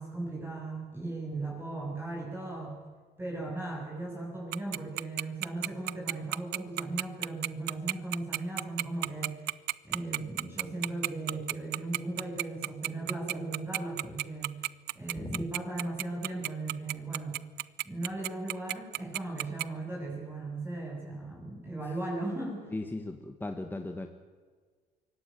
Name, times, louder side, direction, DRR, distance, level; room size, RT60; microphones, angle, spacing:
voice 1, 0.0-2.8 3.2-9.5 9.8-14.6 14.9-17.4 17.8-22.7, right 2 dB, 15° right, -2 dB, 7.5 m, -37 dB
Tick-tock, 4.5-19.6, right 17 dB, 75° right, 0.6 m, -31 dB
voice 2, 22.7-24.1, left 2 dB, 10° left, 6 dB, 1.6 m, -37 dB
24.0 x 18.0 x 9.5 m, 1.5 s
cardioid pair, 110°, 17 cm